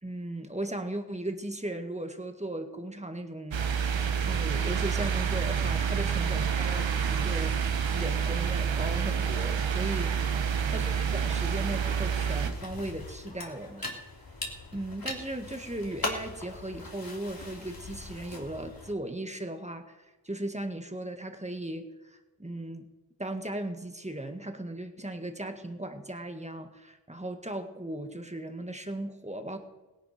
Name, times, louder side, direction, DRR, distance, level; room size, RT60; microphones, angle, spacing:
voice 1, 0.0-3.6 4.2-7.6 7.9-10.3 10.7-14.0 14.7-22.9 23.2-29.6, right 1 dB, 15° right, 6 dB, 1.8 m, -37 dB
sound 1, 3.5-12.5, right 7 dB, 90° right, 1.2 m, -28 dB
sound 2, 12.4-18.9, left 2 dB, 50° left, 3.0 m, -40 dB
17.5 x 10.5 x 5.2 m, 1.1 s
cardioid pair, 40°, 44 cm